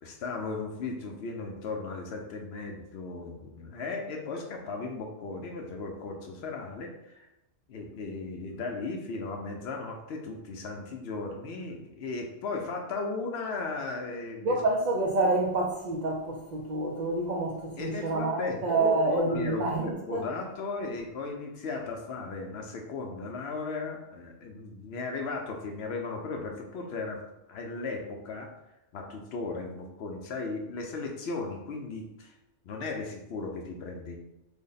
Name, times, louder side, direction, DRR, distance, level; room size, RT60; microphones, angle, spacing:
voice 1, 0.0-7.3 7.7-14.6 17.8-27.2 27.5-28.5 28.9-32.4 32.6-34.2, left 3 dB, 65° left, 0.7 m, -36 dB
voice 2, 14.4-20.2, right 2 dB, 65° right, 0.4 m, -28 dB
3.3 x 2.1 x 3.9 m
omnidirectional pair, 1.3 m